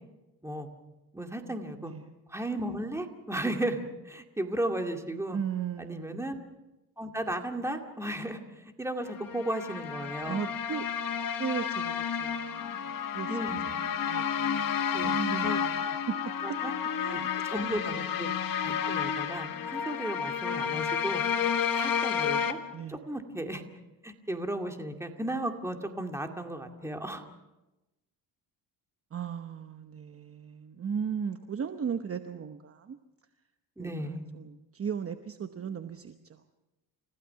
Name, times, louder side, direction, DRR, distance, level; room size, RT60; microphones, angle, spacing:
voice 1, 1.1-1.9 2.3-5.4 5.8-6.4 7.0-10.4 13.3-13.8 14.9-15.6 16.4-16.8 17.1-18.3 18.6-21.2 21.7-22.6 22.9-23.6 24.0-27.2 33.8-34.3, right 1 dB, 5° right, 4 dB, 2.2 m, -35 dB
voice 2, 1.8-2.1 5.3-6.3 10.3-10.9 11.4-13.3 13.7-16.2 16.5-16.6 17.0-17.3 17.6-17.7 22.7-23.1 29.1-33.0 33.8-36.5, right 7 dB, 35° right, 8 dB, 1.0 m, -37 dB
sound 1, 9.1-22.5, left 7 dB, 55° left, 1.7 m, -31 dB
30.0 x 15.5 x 5.8 m, 1.0 s
cardioid pair, 105°, 41 cm